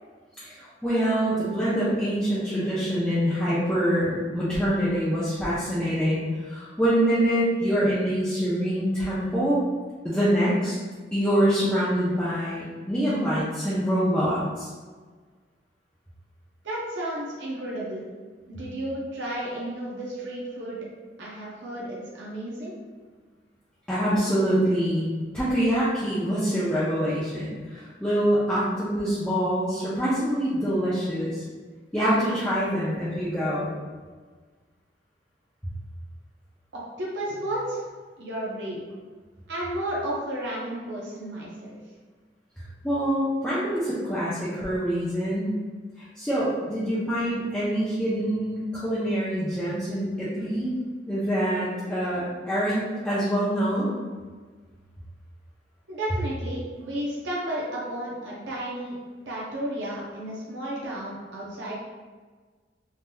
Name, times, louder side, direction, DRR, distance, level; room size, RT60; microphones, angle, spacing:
voice 1, 0.4-9.6 10.0-10.7 11.1-14.7 23.9-25.1 25.3-31.4 31.9-33.7 42.8-45.6 46.0-50.7 51.1-53.9, equal, 5° left, -11 dB, 0.5 m, -25 dB
voice 2, 16.6-18.0 18.5-20.8 21.2-22.7 36.7-37.9 38.2-38.8 39.5-41.8 55.9-59.0 59.3-61.7, right 1 dB, 75° right, -5 dB, 0.6 m, -32 dB
3.3 x 2.7 x 2.2 m, 1.4 s
head